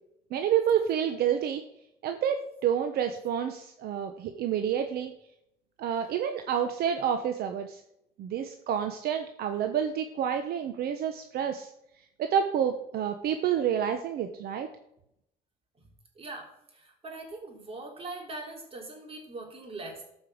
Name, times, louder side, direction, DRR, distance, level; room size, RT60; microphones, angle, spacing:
voice 1, 0.3-1.6 2.0-5.1 5.8-7.8 8.2-11.7 12.2-14.7, right 9 dB, 65° right, 6 dB, 1.0 m, -29 dB
voice 2, 16.2-20.0, right 2 dB, 35° right, 1 dB, 3.5 m, -41 dB
13.0 x 5.4 x 6.4 m, 0.78 s
cardioid pair, 110°, 17 cm